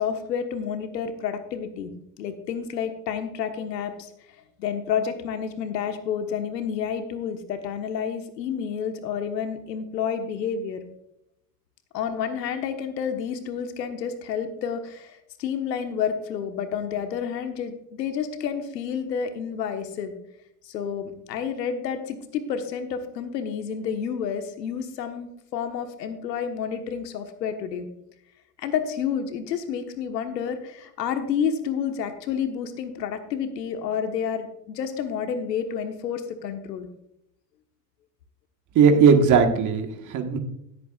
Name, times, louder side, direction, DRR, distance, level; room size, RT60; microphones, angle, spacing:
voice 1, 0.0-1.9 2.2-4.1 4.6-10.8 11.9-20.1 20.6-27.9 28.6-36.9, left 7 dB, 85° left, 7 dB, 1.4 m, -30 dB
voice 2, 38.7-40.4, right 6 dB, 40° right, 6 dB, 1.6 m, -18 dB
16.5 x 8.3 x 2.4 m, 0.78 s
hypercardioid pair, 105°, 49 cm